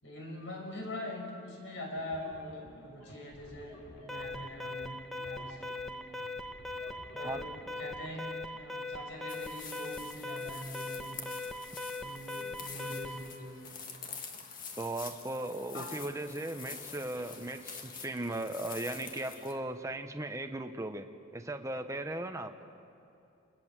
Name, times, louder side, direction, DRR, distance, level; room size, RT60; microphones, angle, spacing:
voice 1, 0.0-6.1 7.1-11.2 12.0-13.6 15.7-16.2, left 1 dB, 60° left, 1 dB, 5.9 m, -43 dB
sound 1, 2.0-8.0, left 1 dB, 80° left, 3.3 m, -53 dB
Alarm, 4.1-13.3, left 2 dB, ahead, 1.1 m, -40 dB
sound 2, 9.3-19.5, left 5 dB, 40° left, 1.9 m, -46 dB
voice 2, 14.8-21.1 21.3-22.5, right 1 dB, 15° right, 7 dB, 0.9 m, -37 dB
28.5 x 20.5 x 7.4 m, 2.6 s
head